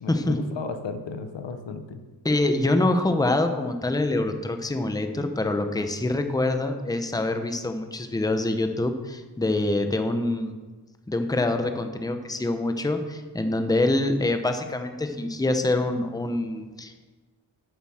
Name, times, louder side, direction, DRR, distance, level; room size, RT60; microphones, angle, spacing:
voice 1, 0.0-2.0, left 4 dB, 90° left, 8 dB, 1.0 m, -34 dB
voice 2, 2.2-10.5 11.1-17.1, left 2 dB, 10° left, 7 dB, 0.7 m, -25 dB
8.7 x 7.0 x 6.3 m, 1.3 s
wide cardioid pair, 140°, 43 cm